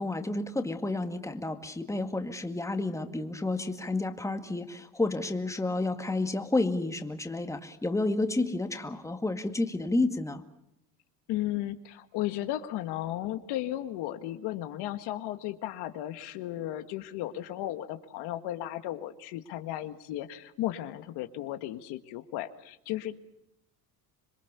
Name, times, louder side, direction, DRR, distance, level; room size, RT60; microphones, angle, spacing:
voice 1, 0.0-10.4, left 2 dB, 10° left, 6 dB, 2.1 m, -30 dB
voice 2, 11.3-23.2, left 14 dB, 85° left, 9 dB, 1.8 m, -35 dB
26.5 x 22.5 x 6.9 m, 0.80 s
cardioid pair, 120°, 39 cm